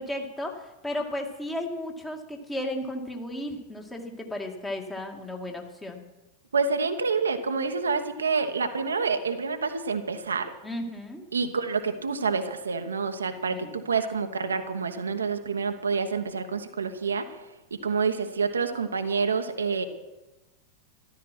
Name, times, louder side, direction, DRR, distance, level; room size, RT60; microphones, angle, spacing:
voice 1, 0.0-6.0 10.6-11.3 13.5-13.7, left 1 dB, 10° left, 2 dB, 2.2 m, -34 dB
voice 2, 6.5-10.5 11.3-17.3 17.7-19.8, right 5 dB, 70° right, 7 dB, 1.1 m, -28 dB
13.5 x 12.5 x 6.0 m, 1.0 s
figure-of-eight pair, 90°, 0 cm